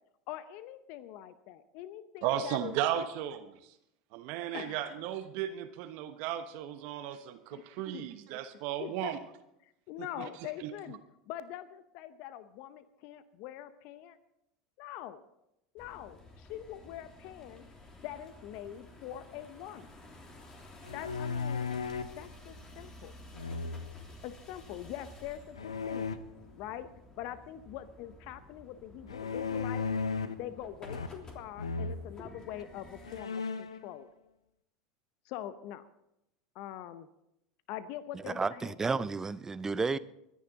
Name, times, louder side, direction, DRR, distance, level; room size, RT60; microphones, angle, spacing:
voice 1, 0.3-3.1 4.5-5.0 7.5-7.6 7.9-8.1 8.8-9.1 9.6-11.0 11.3-14.2 14.8-15.2 15.7-17.6 18.0-19.9 20.9-21.6 22.2-23.1 24.2-26.1 26.6-26.9 27.2-29.9 30.4-34.1 35.2-35.9 36.5-37.1 37.7-38.8, left 12 dB, 55° left, 0.8 m, -43 dB
voice 2, 2.2-3.7 4.1-9.2 10.2-10.3 10.6-10.7, right 11 dB, 60° right, 1.1 m, -35 dB
sound 1, 15.8-33.2, left 1 dB, 25° left, 3.3 m, -53 dB
sound 2, 20.8-22.2 23.3-24.1 25.6-26.2 29.1-30.5 30.8-31.3 31.6-32.0 32.6-32.7 33.0-33.8, left 5 dB, 85° left, 0.9 m, -35 dB
voice 3, 38.4-40.0, right 4 dB, 15° right, 0.6 m, -31 dB
24.0 x 10.5 x 4.0 m
hypercardioid pair, 85°, 3 cm